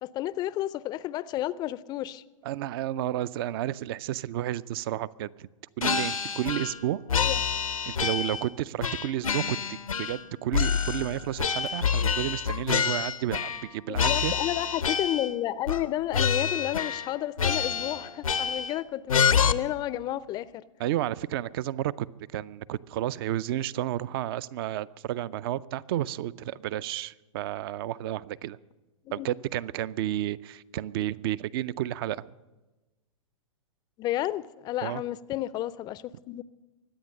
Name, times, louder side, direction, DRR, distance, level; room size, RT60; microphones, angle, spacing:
voice 1, 0.0-2.2 7.1-7.4 13.9-20.6 29.1-29.3 34.0-36.4, left 14 dB, 25° left, 0.4 m, -31 dB
voice 2, 2.4-5.5 5.8-7.0 7.9-14.3 20.8-22.1 22.3-28.6 29.1-32.2 34.8-35.0, right 13 dB, 45° right, 0.5 m, -31 dB
sound 1, 5.8-6.8 7.1-8.5 8.8-10.2 10.5-13.7 13.9-15.3 15.7-15.9 16.1-17.1 17.4-18.8 19.1-19.5, left 7 dB, 85° left, 0.7 m, -27 dB
23.0 x 8.8 x 6.5 m
figure-of-eight pair, 115°, 17 cm